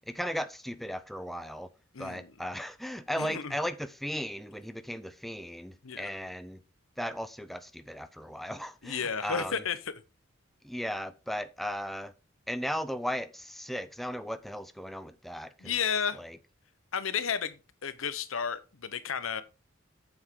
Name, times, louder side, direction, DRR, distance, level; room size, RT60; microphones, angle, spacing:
voice 1, 0.1-1.7 2.0-6.6 7.0-9.6 10.6-12.1 12.5-15.7 16.2-16.4, equal, ahead, 0.5 m, -36 dB
voice 2, 1.9-2.3 3.2-3.5 5.8-6.1 8.8-9.9 15.6-16.2 16.9-19.4, left 7 dB, 75° left, 0.9 m, -32 dB
8.5 x 7.2 x 3.7 m
head